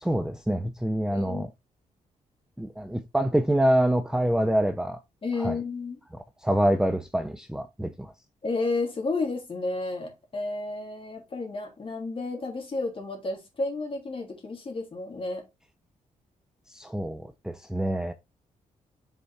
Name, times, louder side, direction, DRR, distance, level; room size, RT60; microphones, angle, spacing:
voice 1, 0.0-1.5 2.6-5.0 5.4-5.6 6.4-8.1 16.7-18.1, right 1 dB, 5° right, 0.6 m, -26 dB
voice 2, 1.1-1.5 5.2-6.0 8.4-15.4, left 3 dB, 40° left, 3.1 m, -31 dB
5.6 x 4.6 x 4.2 m
cardioid pair, 80°, 14 cm